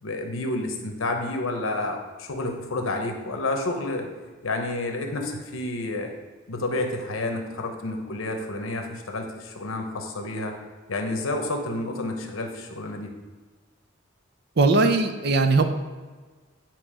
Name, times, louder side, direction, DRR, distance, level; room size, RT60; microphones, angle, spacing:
voice 1, 0.0-4.1 4.4-6.1 6.5-10.5 10.9-13.1, left 2 dB, 85° left, 4 dB, 0.9 m, -30 dB
voice 2, 14.6-15.6, right 3 dB, 50° right, 7 dB, 0.5 m, -19 dB
9.0 x 3.0 x 4.9 m, 1.4 s
head